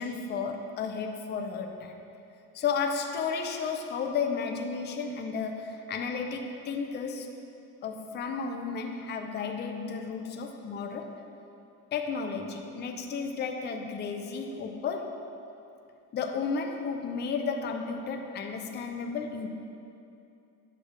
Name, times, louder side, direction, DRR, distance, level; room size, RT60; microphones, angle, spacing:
voice 1, 0.0-1.9 2.5-7.3 7.8-11.1 11.9-15.2 16.1-19.5, left 5 dB, 30° left, 3 dB, 0.5 m, -33 dB
8.7 x 3.3 x 6.2 m, 2.7 s
cardioid pair, 145°, 36 cm